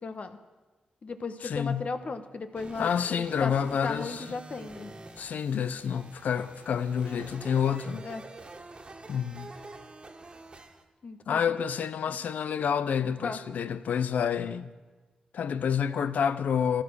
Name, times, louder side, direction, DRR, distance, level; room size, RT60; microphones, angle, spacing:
voice 1, 0.0-0.4 1.0-3.5 3.8-4.9 8.0-8.2 11.0-11.6 12.1-12.2 13.2-13.4, left 4 dB, 55° left, 1.2 m, -36 dB
voice 2, 1.4-1.9 2.8-4.3 5.2-8.0 9.1-9.5 11.3-14.7 15.3-16.8, left 7 dB, 80° left, 0.7 m, -28 dB
sound 1, 2.5-10.8, right 3 dB, 40° right, 1.6 m, -47 dB
14.0 x 13.0 x 6.4 m
cardioid pair, 70°, 3 cm